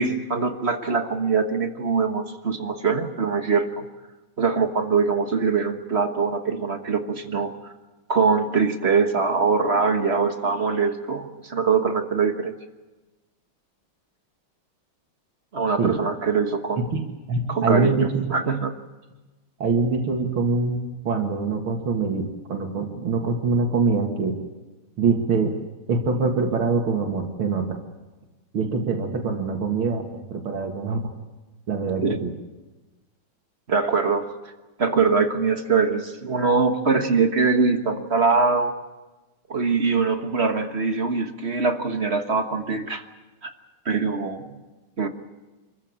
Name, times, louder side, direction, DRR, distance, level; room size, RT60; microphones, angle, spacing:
voice 1, 0.0-3.8 4.4-7.7 8.1-12.5 15.5-16.9 17.5-18.7 32.0-32.2 33.7-34.3 34.8-38.7 39.5-43.0 43.4-43.5 43.8-44.5 45.0-45.1, right 4 dB, 35° right, 6 dB, 1.4 m, -23 dB
voice 2, 17.3-18.4 19.6-20.8 21.0-24.4 25.0-25.6 25.9-27.8 28.5-31.1 31.7-32.3, right 4 dB, 85° right, 2 dB, 2.8 m, -24 dB
26.5 x 14.5 x 8.7 m, 1.2 s
omnidirectional pair, 2.2 m